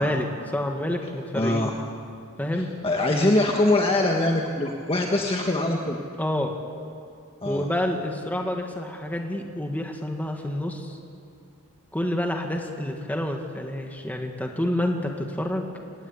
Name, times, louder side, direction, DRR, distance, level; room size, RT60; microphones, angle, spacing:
voice 1, 0.0-1.7 2.4-2.7 6.2-6.6 7.4-11.0 11.9-15.7, left 1 dB, 10° left, 2 dB, 2.0 m, -28 dB
voice 2, 1.4-1.7 2.5-6.0 7.4-7.6, left 2 dB, 25° left, 1 dB, 1.7 m, -23 dB
26.0 x 19.5 x 8.7 m, 2.6 s
head